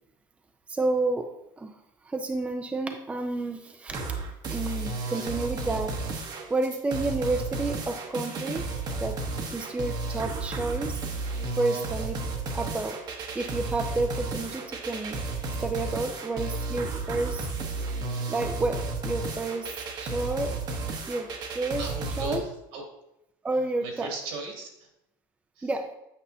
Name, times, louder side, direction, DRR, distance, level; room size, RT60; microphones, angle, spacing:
voice 1, 0.7-1.3 1.6-1.7 2.0-4.1 4.5-5.9 6.5-8.7 9.0-9.2 9.5-11.0 11.6-12.3 12.5-13.0 13.3-15.2 15.6-17.5 18.3-19.7 20.0-20.5 21.1-21.3 21.5-21.9 22.2-22.4 23.4-24.1 25.6-25.8, right 2 dB, 10° right, 5 dB, 0.5 m, -30 dB
sound 1, 3.9-22.4, right 3 dB, 35° right, 0.9 m, -33 dB
voice 2, 21.8-22.8 23.8-24.9 25.6-25.7, right 3 dB, 75° right, 1 dB, 2.2 m, -38 dB
8.5 x 5.4 x 2.7 m, 0.84 s
cardioid pair, 140°, 12 cm